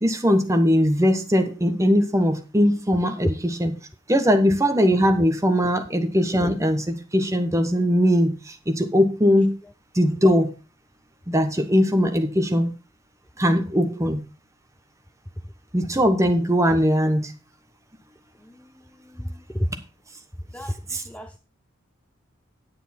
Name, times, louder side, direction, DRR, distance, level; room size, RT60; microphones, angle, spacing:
voice 1, 0.0-3.7 4.1-9.5 9.9-10.5 11.3-12.7 13.4-14.2 15.7-17.3 20.9-21.0, equal, 15° right, 7 dB, 1.1 m, -20 dB
voice 2, 19.1-19.7 20.5-21.4, equal, 5° left, 8 dB, 0.4 m, -29 dB
9.6 x 8.1 x 4.3 m, 0.32 s
head